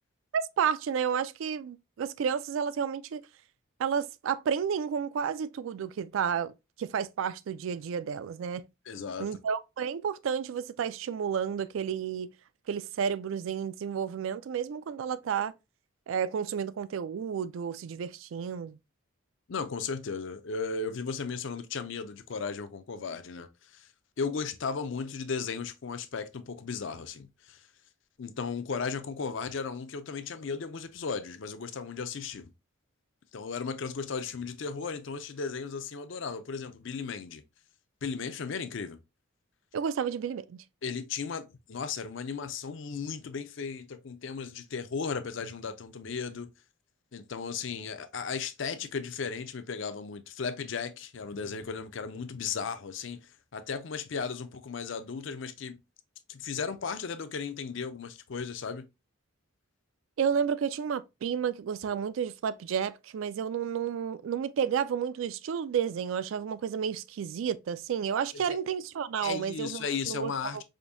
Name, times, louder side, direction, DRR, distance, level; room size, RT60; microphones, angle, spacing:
voice 1, 0.3-3.2 3.8-6.5 6.8-8.6 9.2-12.3 12.7-15.5 16.1-18.8 39.7-40.6 60.2-70.6, right 7 dB, 70° right, 0.3 m, -31 dB
voice 2, 8.9-9.4 19.5-23.5 23.7-23.9 24.2-27.6 28.2-32.5 33.3-37.4 38.0-39.0 40.8-46.5 47.1-55.8 56.3-58.9 68.5-68.6 69.2-70.6, left 5 dB, 60° left, 0.5 m, -35 dB
5.0 x 2.6 x 2.6 m
head